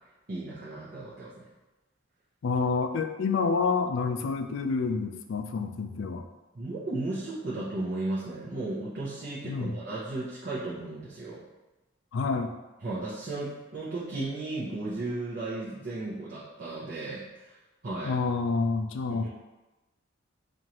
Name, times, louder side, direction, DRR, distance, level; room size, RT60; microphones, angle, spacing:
voice 1, 0.3-1.5 6.5-11.4 12.8-17.6 17.8-18.1 19.1-19.3, right 2 dB, 50° right, -8 dB, 0.7 m, -35 dB
voice 2, 2.4-6.2 9.4-9.7 12.1-12.5 18.0-19.3, left 4 dB, 70° left, 7 dB, 0.3 m, -28 dB
4.5 x 2.5 x 2.9 m, 1.1 s
head